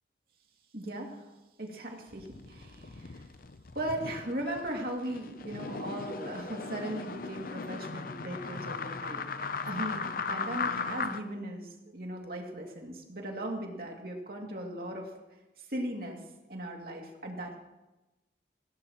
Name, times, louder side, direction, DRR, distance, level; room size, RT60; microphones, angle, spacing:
voice 1, 0.7-1.3 1.6-3.3 3.7-9.2 9.7-15.1 15.7-16.2 16.5-17.6, right 1 dB, 55° right, 1 dB, 2.5 m, -38 dB
sound 1, 2.1-11.2, left 4 dB, 50° left, 0.6 m, -37 dB
19.5 x 17.5 x 3.1 m, 1.0 s
head